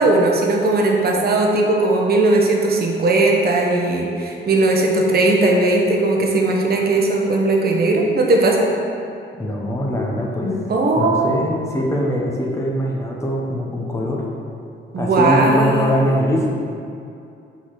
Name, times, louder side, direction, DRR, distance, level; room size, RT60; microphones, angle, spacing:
voice 1, 0.0-8.7 10.7-11.5 14.9-16.0, right 2 dB, 50° right, 0 dB, 1.2 m, -18 dB
voice 2, 9.4-10.5 11.0-14.2 15.0-16.5, equal, 15° left, -3 dB, 1.2 m, -22 dB
5.9 x 4.1 x 6.0 m, 2.5 s
cardioid pair, 90°, 20 cm